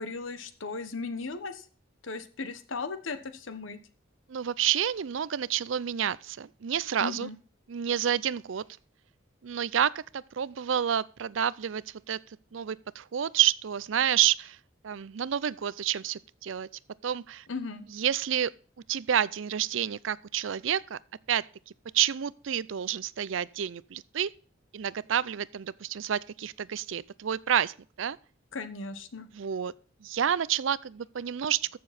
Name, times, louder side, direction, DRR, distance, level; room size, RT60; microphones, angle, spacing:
voice 1, 0.0-1.7 2.0-3.8 7.0-7.4 17.5-17.9 28.5-29.3, left 4 dB, 80° left, 1.2 m, -36 dB
voice 2, 4.3-7.3 7.7-8.6 9.4-12.2 12.5-14.6 14.8-16.7 17.0-17.4 17.9-18.5 18.9-21.0 21.3-21.4 21.9-24.3 24.7-28.2 29.3-29.7 30.0-31.7, right 9 dB, 75° right, 0.5 m, -29 dB
14.0 x 6.9 x 4.2 m
head